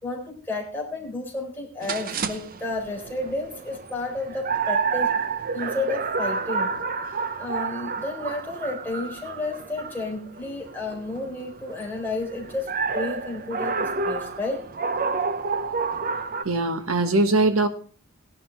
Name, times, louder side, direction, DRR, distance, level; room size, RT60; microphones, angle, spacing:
voice 1, 0.0-5.2 5.5-6.7 7.4-14.6, left 2 dB, 10° left, 4.0 m, -31 dB
sound 1, 1.8-16.4, right 5 dB, 40° right, 0.7 m, -29 dB
voice 2, 16.4-17.7, right 2 dB, 70° right, 1.3 m, -21 dB
17.0 x 11.0 x 3.3 m
head